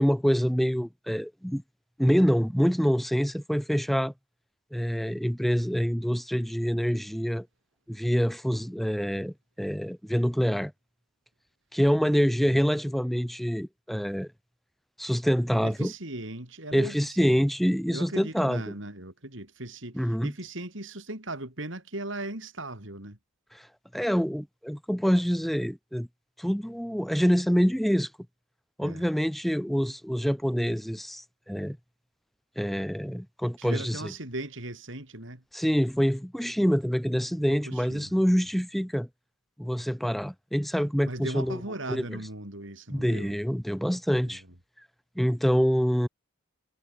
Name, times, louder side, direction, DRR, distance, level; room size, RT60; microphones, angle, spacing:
voice 1, 0.0-1.6 2.0-4.1 4.7-7.5 7.9-10.7 11.7-14.3 15.0-15.9 16.7-18.6 20.0-20.3 23.9-26.1 26.4-28.1 28.8-31.8 32.6-34.0 35.5-39.1 39.6-41.6 41.9-42.0 42.9-44.4 45.2-46.1, equal, ahead, 0.4 m, -26 dB
voice 2, 15.6-17.5 17.9-23.2 28.8-29.1 33.6-35.4 37.5-38.1 41.0-43.3 44.3-44.4, right 2 dB, 60° right, 4.4 m, -38 dB
head